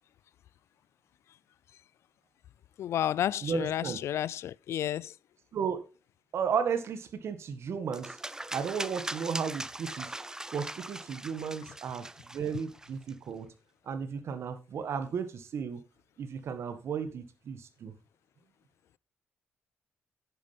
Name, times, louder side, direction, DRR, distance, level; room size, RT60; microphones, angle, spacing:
voice 1, 2.8-5.2 11.4-11.7, left 11 dB, 75° left, 0.4 m, -32 dB
voice 2, 3.4-4.0 5.5-5.8 6.3-8.2 8.5-10.1 10.5-12.1 12.3-13.5 13.9-15.8 16.2-17.9, right 6 dB, 70° right, 1.8 m, -34 dB
sound 1, 7.9-13.1, right 1 dB, 15° right, 0.7 m, -40 dB
10.5 x 9.8 x 3.5 m
cardioid pair, 65°, 5 cm